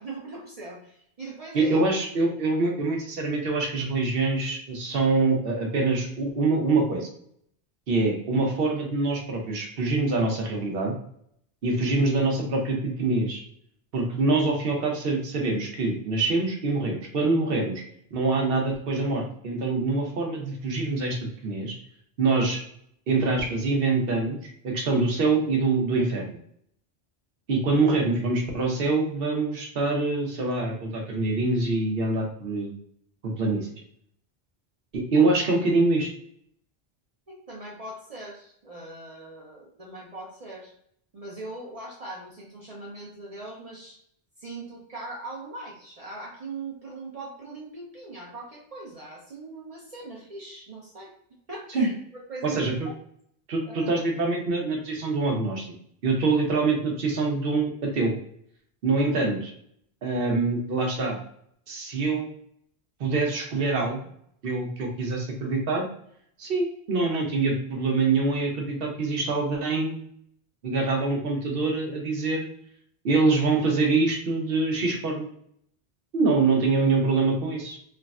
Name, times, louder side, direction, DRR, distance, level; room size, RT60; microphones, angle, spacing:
voice 1, 0.0-1.8 37.3-40.7 41.1-44.0 44.4-51.1 51.5-52.9 53.6-54.0, right 2 dB, 45° right, -3 dB, 0.6 m, -40 dB
voice 2, 1.5-7.1 7.9-10.9 11.6-13.4 13.9-17.8 18.1-21.2 21.4-21.7 22.2-22.6 23.1-24.4 24.6-26.4 27.5-32.7 33.2-33.7 34.9-36.1 51.7-51.9 52.4-52.7 53.5-55.7 56.0-58.1 58.8-59.5 60.0-61.2 61.7-62.3 63.0-64.0 64.4-65.9 66.4-70.0 70.6-72.5 73.0-75.3 76.1-77.8, right 3 dB, 65° right, 1 dB, 0.9 m, -25 dB
3.3 x 2.1 x 2.3 m, 0.68 s
omnidirectional pair, 1.0 m